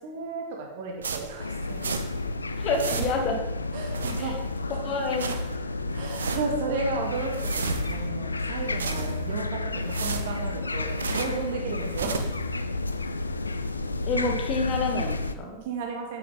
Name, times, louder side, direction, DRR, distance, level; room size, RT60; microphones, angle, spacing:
voice 1, 0.0-1.8 3.7-4.4 5.2-5.3 5.9-12.2 15.6-16.2, right 4 dB, 50° right, 1 dB, 2.5 m, -33 dB
sound 1, 1.0-2.3 2.6-3.4 3.8-4.6 4.9-5.6 6.0-6.6 7.0-8.1 8.5-9.4 9.8-11.5 11.8-12.4, right 5 dB, 70° right, 0.9 m, -34 dB
sound 2, 1.4-15.3, left 2 dB, 80° left, 0.6 m, -31 dB
voice 2, 2.6-3.4 4.2-4.3 4.8-5.3 14.0-15.6, left 3 dB, 35° left, 3 dB, 2.1 m, -28 dB
10.5 x 8.6 x 4.3 m, 0.96 s
figure-of-eight pair, 90°, 0 cm